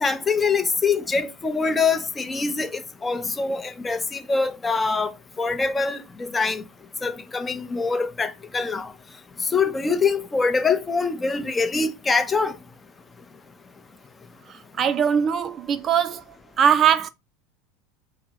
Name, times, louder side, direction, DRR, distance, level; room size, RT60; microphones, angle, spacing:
voice 1, 0.0-5.1 5.4-6.6 7.0-8.9 9.5-12.6, left 4 dB, 20° left, 0.6 m, -24 dB
voice 2, 14.5-16.2 16.6-17.1, right 8 dB, 35° right, 0.3 m, -21 dB
4.4 x 2.0 x 3.6 m
supercardioid pair, 120°, 0 cm